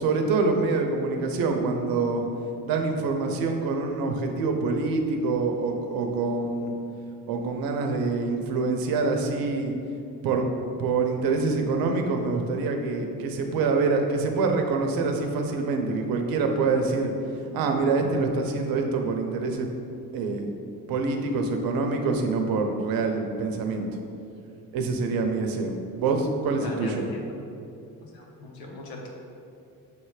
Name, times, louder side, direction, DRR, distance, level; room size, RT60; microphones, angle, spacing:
voice 1, 0.0-2.2 2.6-6.7 7.3-9.7 10.2-10.5 10.8-17.1 17.5-19.7 20.1-20.5 20.9-24.0 24.7-27.0, right 3 dB, 75° right, 4 dB, 0.8 m, -25 dB
voice 2, 26.6-27.4 28.0-29.1, left 1 dB, 75° left, 0 dB, 1.3 m, -40 dB
6.8 x 3.3 x 4.9 m, 2.7 s
cardioid pair, 110°, 36 cm